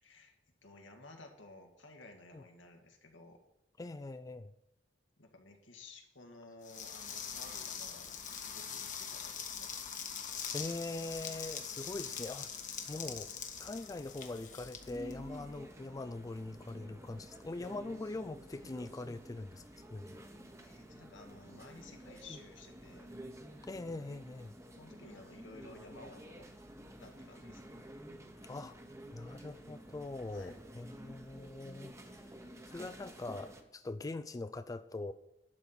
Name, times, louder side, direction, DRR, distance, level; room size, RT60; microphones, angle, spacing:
voice 1, 0.0-0.4 0.6-3.4 5.2-9.7 20.6-23.2 24.7-26.5 27.0-27.8 30.3-30.6, left 2 dB, 85° left, 3 dB, 1.8 m, -55 dB
voice 2, 3.8-4.5 10.5-12.5 12.9-13.3 13.6-19.6 19.9-20.1 22.3-22.4 23.6-24.6 28.5-28.8 29.1-31.9 32.7-35.1, left 2 dB, 20° left, 11 dB, 0.3 m, -42 dB
sound 1, 6.6-15.6, left 7 dB, 45° left, 1.0 m, -43 dB
sound 2, 14.8-33.6, right 1 dB, 15° right, 1.0 m, -51 dB
12.0 x 4.3 x 7.9 m, 0.86 s
head